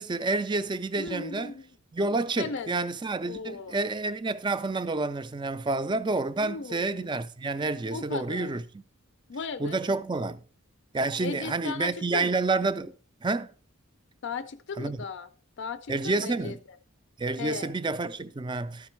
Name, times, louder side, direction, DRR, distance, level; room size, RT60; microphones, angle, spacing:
voice 1, 0.0-1.5 1.9-8.6 9.6-10.4 10.9-12.9 13.2-13.5 14.8-15.0 15.9-16.6 17.2-18.9, right 3 dB, 20° right, 0.4 m, -29 dB
voice 2, 1.0-1.7 2.4-2.7 3.3-3.8 6.4-7.1 7.9-8.5 9.3-9.8 11.2-12.4 14.2-15.3 15.6-16.8 17.4-17.7, left 5 dB, 55° left, 0.4 m, -37 dB
13.0 x 5.2 x 4.5 m
head